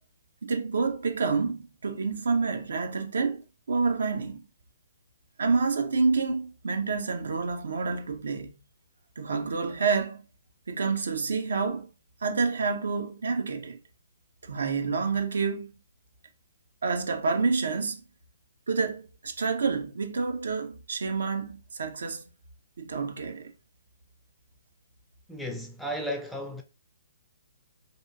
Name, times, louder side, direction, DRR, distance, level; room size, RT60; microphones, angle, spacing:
voice 1, 0.4-3.4 3.7-4.4 5.4-8.5 9.2-10.2 10.7-11.9 12.2-13.8 14.4-15.7 16.8-18.0 18.7-22.2 22.8-23.5, right 4 dB, 60° right, 0.4 m, -28 dB
voice 2, 25.3-26.6, equal, ahead, 0.4 m, -34 dB
2.8 x 2.3 x 2.4 m
figure-of-eight pair, 125°, 0 cm